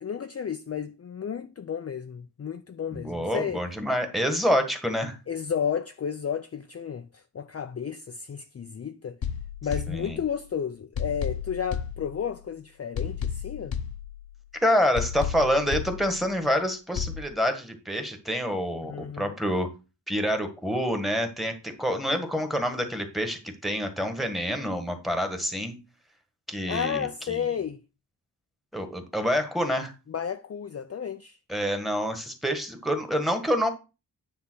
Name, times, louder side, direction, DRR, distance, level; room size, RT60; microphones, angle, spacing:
voice 1, 0.0-3.6 5.3-9.2 9.6-13.8 18.8-19.4 26.7-27.8 30.1-31.4, left 7 dB, 35° left, 0.5 m, -32 dB
voice 2, 2.9-5.2 9.9-10.2 14.6-19.7 20.1-25.8 26.5-27.4 28.7-29.9 31.5-33.7, equal, ahead, 1.4 m, -27 dB
sound 1, 9.2-10.5 11.0-12.5 13.0-14.5 15.0-16.5 17.0-17.2, left 8 dB, 60° left, 0.8 m, -33 dB
9.7 x 3.5 x 6.2 m
wide cardioid pair, 130°, 41 cm